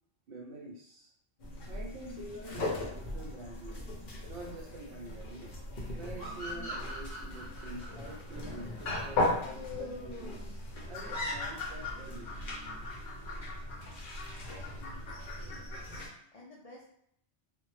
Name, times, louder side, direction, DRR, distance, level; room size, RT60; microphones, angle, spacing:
voice 1, 0.3-1.1 1.6-3.8 4.3-5.6 6.0-10.4 10.9-12.3, right 2 dB, 65° right, -1 dB, 0.7 m, -46 dB
sound 1, 1.4-16.1, left 2 dB, 55° left, 0.7 m, -38 dB
sound 2, 6.2-9.6, right 1 dB, 20° left, 0.7 m, -44 dB
voice 2, 14.4-15.8 16.3-16.9, left 2 dB, 75° left, -4 dB, 0.3 m, -53 dB
2.1 x 2.1 x 3.0 m, 0.70 s
omnidirectional pair, 1.2 m